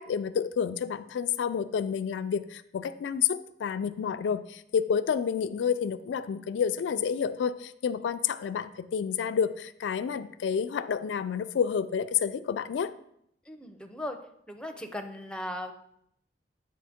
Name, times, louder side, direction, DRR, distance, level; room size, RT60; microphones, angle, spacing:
voice 1, 0.0-12.9, left 7 dB, 90° left, 12 dB, 0.3 m, -29 dB
voice 2, 13.5-14.2 14.5-15.7, left 1 dB, 5° left, 5 dB, 0.5 m, -37 dB
8.4 x 4.3 x 3.5 m, 0.73 s
head